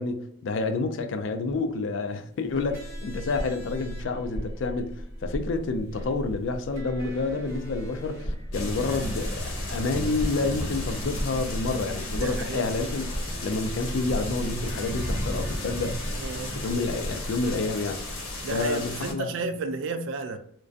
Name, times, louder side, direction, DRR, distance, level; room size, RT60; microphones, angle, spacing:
voice 1, 0.0-4.9 5.2-13.1 13.4-16.2 16.6-18.1 18.5-19.3, left 3 dB, 60° left, 0.3 m, -29 dB
sound 1, 2.3-17.5, right 1 dB, 15° right, 1.2 m, -48 dB
sound 2, 2.5-17.5, equal, 45° right, 0.9 m, -37 dB
sound 3, 8.5-19.1, left 1 dB, 90° left, 0.8 m, -34 dB
voice 2, 12.2-12.6 16.2-16.6 18.4-20.4, right 4 dB, 60° right, 0.3 m, -32 dB
2.5 x 2.2 x 2.4 m
head